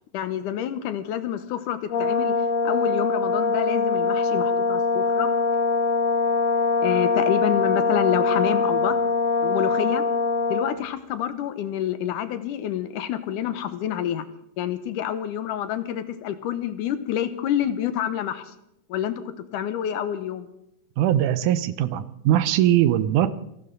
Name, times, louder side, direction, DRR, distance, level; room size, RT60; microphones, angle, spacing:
voice 1, 0.1-2.3 2.6-5.3 6.8-9.0 9.4-10.0 10.5-14.3 14.6-18.4 18.9-19.2 19.5-20.5, left 10 dB, 80° left, 12 dB, 2.5 m, -27 dB
Brass instrument, 1.9-10.8, left 3 dB, 55° left, 2.5 m, -23 dB
voice 2, 21.0-23.3, right 12 dB, 75° right, 14 dB, 2.2 m, -21 dB
28.0 x 12.0 x 3.8 m, 0.79 s
omnidirectional pair, 3.7 m